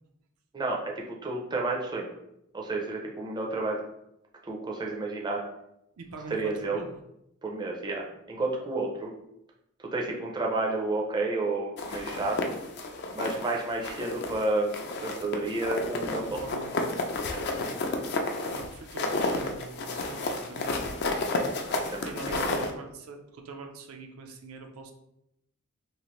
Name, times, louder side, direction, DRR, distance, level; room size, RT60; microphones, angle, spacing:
voice 1, 0.5-2.1 2.5-3.8 4.4-5.4 6.3-6.8 7.4-9.1 9.9-12.5 13.1-14.7 15.0-16.4 17.3-17.4 21.7-22.6, right 2 dB, 20° right, -1 dB, 0.4 m, -31 dB
voice 2, 6.0-7.0 16.1-16.7 18.5-20.9 21.9-24.9, right 4 dB, 80° right, 4 dB, 0.4 m, -44 dB
sound 1, 11.8-13.5 13.8-14.4 14.7-22.7, left 2 dB, 50° left, 0.4 m, -31 dB
3.0 x 2.4 x 3.0 m, 0.81 s
head